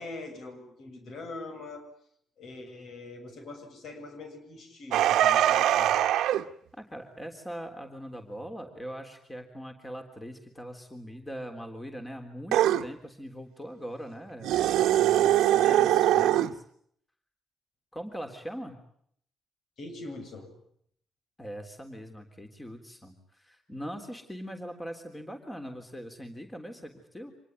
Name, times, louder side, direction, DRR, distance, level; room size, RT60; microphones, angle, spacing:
voice 1, 0.0-1.9 2.4-6.0 15.2-16.3 19.8-20.5, left 2 dB, 65° left, 6 dB, 7.1 m, -43 dB
sound 1, 4.9-6.4 12.5-12.8 14.4-16.5, right 12 dB, 85° right, 1.0 m, -22 dB
voice 2, 6.8-16.5 17.9-18.8 21.4-27.3, equal, 15° left, 6 dB, 3.5 m, -41 dB
26.5 x 19.5 x 9.2 m, 0.68 s
cardioid pair, 90°, 0 cm